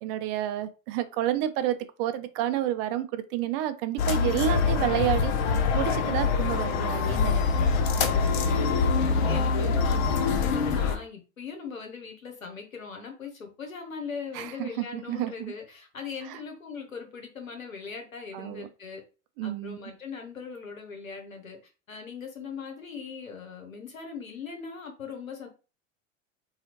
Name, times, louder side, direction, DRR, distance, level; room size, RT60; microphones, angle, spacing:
voice 1, 0.0-5.3 5.7-7.4 14.3-15.5 16.3-16.4 18.3-18.7 19.4-19.8, right 12 dB, 45° right, 0.5 m, -30 dB
sound 1, 4.0-11.0, left 5 dB, 50° left, 0.6 m, -24 dB
voice 2, 7.6-8.1 8.5-19.0 19.4-25.5, left 6 dB, 90° left, 0.9 m, -40 dB
2.8 x 2.3 x 2.8 m
figure-of-eight pair, 80°, 39 cm